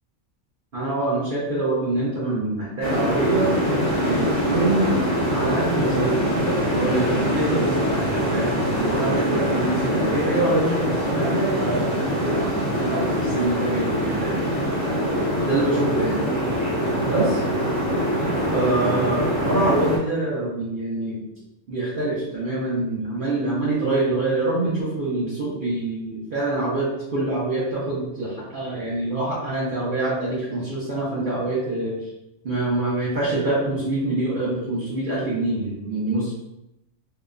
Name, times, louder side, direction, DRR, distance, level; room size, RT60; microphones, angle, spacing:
voice 1, 0.7-3.5 4.0-14.5 15.5-16.2 17.0-17.4 18.2-21.3 21.7-31.9 32.4-36.3, right 2 dB, 50° right, -8 dB, 0.7 m, -25 dB
sound 1, 2.8-20.0, equal, 30° left, 0.5 m, -23 dB
2.9 x 2.1 x 2.4 m, 0.89 s
omnidirectional pair, 1.4 m